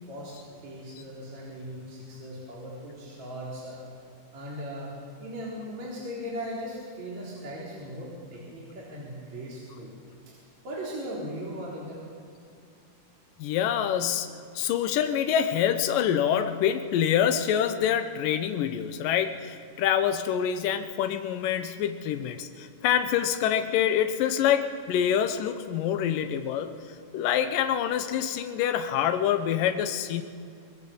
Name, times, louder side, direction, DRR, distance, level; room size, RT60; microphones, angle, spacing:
voice 1, 0.1-3.8 4.3-9.9 10.3-10.4 10.6-12.0, equal, 55° right, -6 dB, 5.1 m, -38 dB
voice 2, 13.4-26.7 27.1-30.2, left 9 dB, 80° left, 8 dB, 2.6 m, -26 dB
25.0 x 21.0 x 7.2 m, 2.4 s
omnidirectional pair, 3.9 m